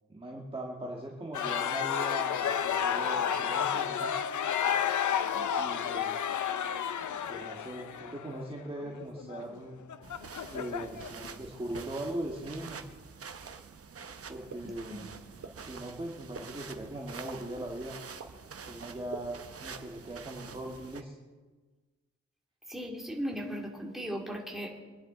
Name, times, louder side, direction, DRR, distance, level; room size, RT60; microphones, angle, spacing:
voice 1, 0.1-4.1 5.6-6.4 7.3-9.8 10.4-12.8 14.3-15.1 15.6-18.0 18.7-21.1, right 1 dB, 20° right, -2 dB, 1.6 m, -40 dB
sound 1, 1.3-11.3, left 8 dB, 85° left, 0.7 m, -31 dB
sound 2, 10.0-21.0, right 5 dB, 50° right, 0.8 m, -47 dB
sound 3, 14.5-14.6 15.4-15.5 16.3-16.4 17.3-17.4 18.2-18.3 19.1-19.2, right 5 dB, 70° right, 1.7 m, -40 dB
voice 2, 14.6-15.1 22.7-24.8, equal, ahead, -1 dB, 2.5 m, -37 dB
24.5 x 10.5 x 3.8 m, 1.4 s
wide cardioid pair, 115°, 29 cm